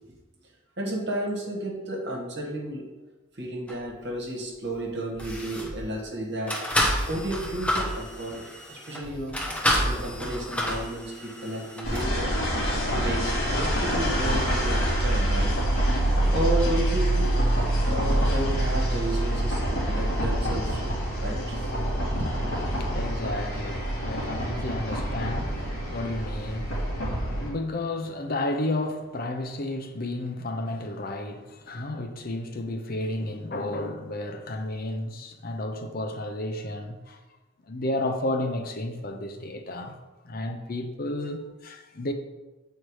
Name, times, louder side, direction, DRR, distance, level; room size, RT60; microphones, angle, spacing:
voice 1, 0.8-2.8 3.4-6.5 7.1-9.4 9.8-12.3 12.9-15.5 16.3-17.3 17.9-21.6 22.1-22.6, right 1 dB, 55° right, 1.6 m, -32 dB
sound 1, 3.7-3.8 4.7-4.8 5.1-5.8 6.5-12.2 12.8-12.9, equal, 5° left, 1.1 m, -29 dB
sound 2, 11.8-27.5, right 1 dB, 70° left, 2.5 m, -26 dB
voice 2, 22.8-26.7 27.2-37.2 37.7-40.0 40.2-42.1, left 1 dB, 45° left, 0.6 m, -32 dB
7.9 x 4.5 x 4.8 m
head